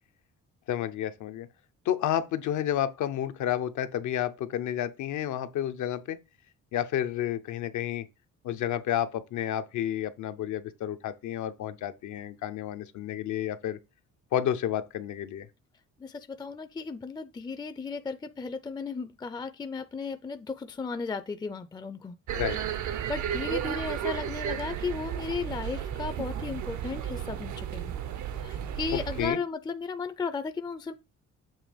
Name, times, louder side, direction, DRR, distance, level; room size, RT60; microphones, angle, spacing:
voice 1, 0.7-1.5 1.9-6.2 6.7-8.1 8.4-13.8 14.3-15.5 22.3-22.6 28.9-29.4, left 11 dB, 75° left, 0.7 m, -30 dB
voice 2, 16.0-22.2 22.8-27.9 28.4-30.9, left 4 dB, 15° left, 0.4 m, -35 dB
sound 1, 22.3-29.3, right 9 dB, 70° right, 0.7 m, -33 dB
7.4 x 2.9 x 5.0 m
cardioid pair, 90°, 30 cm